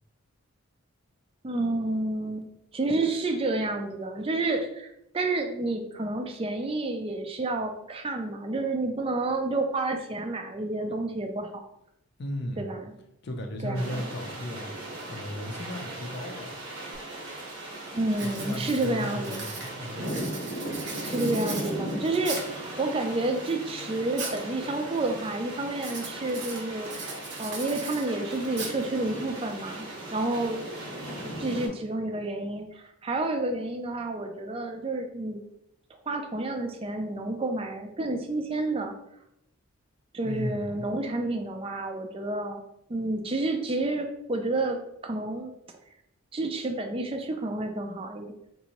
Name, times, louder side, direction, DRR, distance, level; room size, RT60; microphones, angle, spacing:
voice 1, 1.4-2.5 2.7-11.6 12.6-12.9 13.6-14.1 17.9-19.5 21.0-30.7 31.4-35.4 36.1-38.9 40.1-42.6 42.9-45.5 46.3-48.3, right 2 dB, 25° right, 5 dB, 0.4 m, -30 dB
voice 2, 12.2-12.7 13.2-14.7 15.1-16.6 18.2-20.2 40.2-40.9, equal, 50° left, 3 dB, 0.5 m, -35 dB
sound 1, 13.7-31.7, right 1 dB, 80° right, 1.1 m, -38 dB
Writing, 16.9-17.0 17.5-17.7 18.1-22.6 23.2-24.4 24.7-25.2 25.7-29.2, right 3 dB, 50° right, 0.7 m, -39 dB
4.0 x 2.6 x 2.9 m, 0.80 s
head